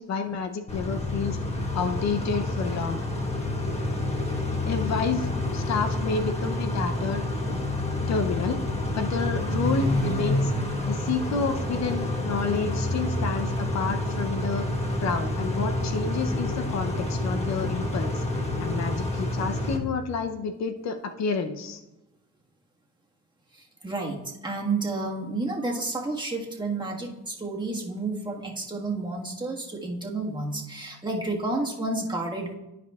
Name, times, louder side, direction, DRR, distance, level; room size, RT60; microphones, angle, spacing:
voice 1, 0.0-1.4 1.7-3.0 4.7-7.6 8.1-8.6 8.9-10.5 10.9-14.7 15.0-18.2 18.6-21.8, left 5 dB, 60° left, 7 dB, 0.7 m, -30 dB
Car / Idling / Accelerating revving vroom, 0.7-19.8, left 1 dB, 20° left, 1.2 m, -28 dB
voice 2, 23.5-32.5, right 2 dB, 15° right, -2 dB, 1.5 m, -31 dB
13.5 x 5.0 x 2.3 m, 0.98 s
cardioid pair, 90°, 30 cm